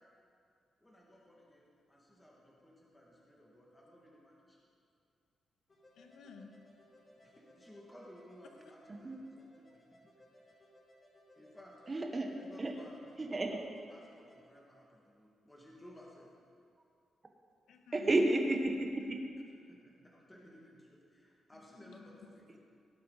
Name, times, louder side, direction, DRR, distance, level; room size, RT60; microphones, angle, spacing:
voice 1, 0.8-4.6 7.2-10.0 10.5-10.6 11.4-11.7 12.3-13.6 13.9-16.3 19.7-22.6, equal, 10° left, -4 dB, 2.0 m, -58 dB
sound 1, 5.7-14.4, equal, 25° left, 4.1 m, -64 dB
voice 2, 5.9-7.3 17.7-18.1 21.5-22.3, left 5 dB, 80° left, 5 dB, 1.2 m, -56 dB
voice 3, 11.9-12.3 12.6-12.7 13.2-13.6 17.9-19.2, right 2 dB, 20° right, 3 dB, 1.1 m, -31 dB
18.0 x 11.0 x 4.1 m, 2.3 s
wide cardioid pair, 160°, 0 cm